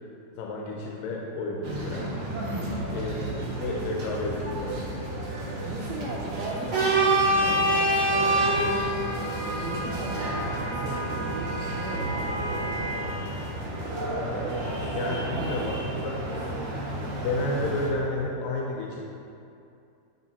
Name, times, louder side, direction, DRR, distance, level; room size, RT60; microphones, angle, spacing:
voice 1, 0.4-3.1 3.6-4.8 14.9-15.8 16.0-16.2 17.2-19.0, left 2 dB, 90° left, -2 dB, 2.3 m, -31 dB
sound 1, 1.6-17.9, right 1 dB, 60° right, 1.2 m, -29 dB
voice 2, 2.4-2.7 5.4-9.1 9.5-12.5 15.0-16.3, right 2 dB, 80° right, -5 dB, 1.5 m, -38 dB
sound 2, 2.7-14.1, right 1 dB, 45° right, 0.9 m, -43 dB
11.5 x 4.3 x 2.8 m, 2.6 s
omnidirectional pair, 3.8 m